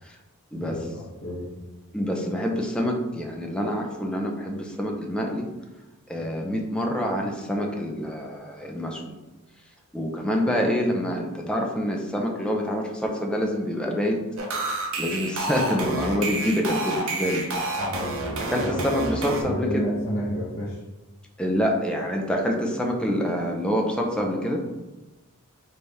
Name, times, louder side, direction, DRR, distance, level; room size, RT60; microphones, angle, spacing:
voice 1, 0.5-1.6 17.8-18.9 19.2-20.8, equal, 55° left, -9 dB, 1.0 m, -31 dB
voice 2, 1.9-5.5 6.1-9.2 9.9-14.2 15.0-17.5 18.5-19.9 21.4-24.6, equal, 5° left, 0 dB, 0.5 m, -26 dB
sound 1, 14.4-19.4, right 2 dB, 60° right, 0.8 m, -29 dB
4.0 x 3.4 x 3.4 m, 1.1 s
head